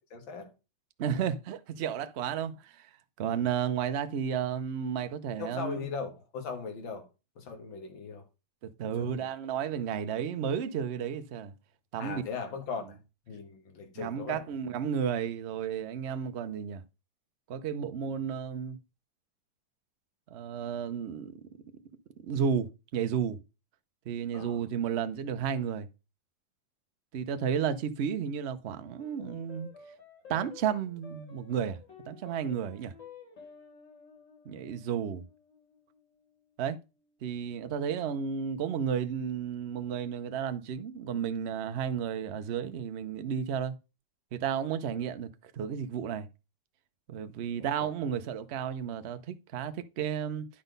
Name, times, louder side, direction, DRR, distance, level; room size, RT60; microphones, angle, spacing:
voice 1, 0.1-0.5 5.4-7.1 7.4-8.3 8.9-9.3 12.0-13.0 13.3-14.4 24.3-24.6 47.8-47.9, left 5 dB, 85° left, 2.3 m, -39 dB
voice 2, 1.0-2.9 3.2-5.8 8.6-11.5 11.9-12.2 14.0-16.8 17.5-18.8 20.3-21.4 22.2-23.4 24.1-25.9 27.1-29.7 30.3-31.8 32.1-32.9 34.5-35.2 36.6-36.8 37.2-43.7 44.3-46.3 47.1-50.5, right 8 dB, 75° right, 0.6 m, -32 dB
sound 1, 29.0-37.6, left 5 dB, 70° left, 3.6 m, -53 dB
10.0 x 4.0 x 5.2 m
omnidirectional pair, 2.1 m